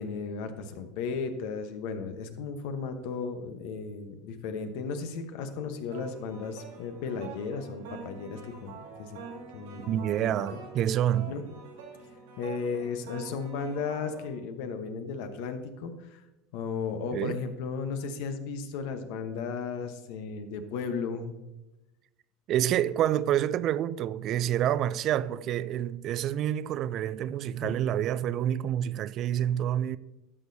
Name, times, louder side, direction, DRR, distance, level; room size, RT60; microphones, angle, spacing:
voice 1, 0.0-8.7 9.0-9.2 9.5-10.6 11.3-11.4 12.4-16.2 16.5-21.4 27.6-27.8, left 5 dB, 70° left, 1.0 m, -35 dB
sound 1, 5.9-14.3, right 4 dB, 85° right, 2.2 m, -46 dB
voice 2, 9.8-11.3 17.1-17.4 22.5-30.0, right 11 dB, 50° right, 0.3 m, -28 dB
12.5 x 6.6 x 2.7 m
hypercardioid pair, 95°, 0 cm